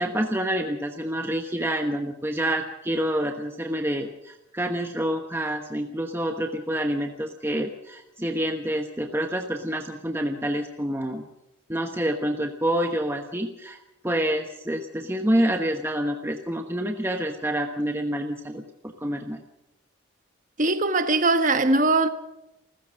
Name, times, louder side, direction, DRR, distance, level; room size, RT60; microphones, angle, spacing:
voice 1, 0.0-11.3 11.7-19.4, right 1 dB, 10° right, 1.0 m, -27 dB
voice 2, 20.6-22.1, right 2 dB, 40° right, 1.2 m, -21 dB
29.0 x 14.5 x 6.4 m
head